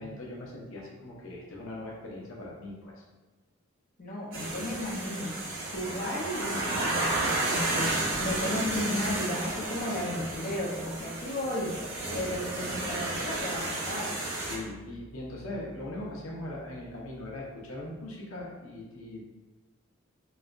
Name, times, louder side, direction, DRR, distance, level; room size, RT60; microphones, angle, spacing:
voice 1, 0.0-3.0 14.4-19.2, left 1 dB, 85° left, -3 dB, 0.7 m, -40 dB
voice 2, 4.0-5.3 5.7-11.7 12.1-14.1, left 1 dB, 40° left, -5 dB, 0.6 m, -34 dB
sound 1, 4.3-14.6, right 2 dB, 75° right, 0.8 m, -32 dB
4.0 x 2.2 x 2.5 m, 1.2 s
head